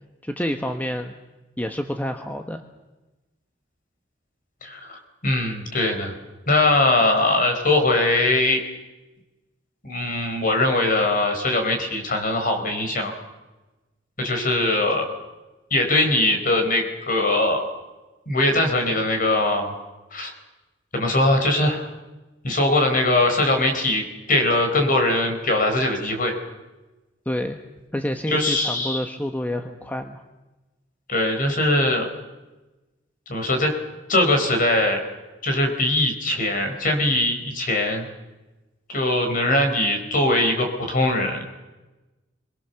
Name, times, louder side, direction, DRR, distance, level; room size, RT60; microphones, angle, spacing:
voice 1, 0.2-1.2 1.6-2.6 27.3-27.6 27.9-30.2, equal, 10° left, 6 dB, 1.2 m, -28 dB
voice 2, 4.6-6.1 6.5-8.6 9.8-13.1 14.2-15.1 15.7-17.6 18.3-19.8 20.1-20.3 20.9-21.9 22.4-26.3 28.3-29.1 31.1-32.1 33.3-33.7 34.1-35.0 35.4-38.0 38.9-41.4, left 2 dB, 45° left, 5 dB, 4.7 m, -21 dB
27.5 x 23.0 x 7.0 m, 1.1 s
head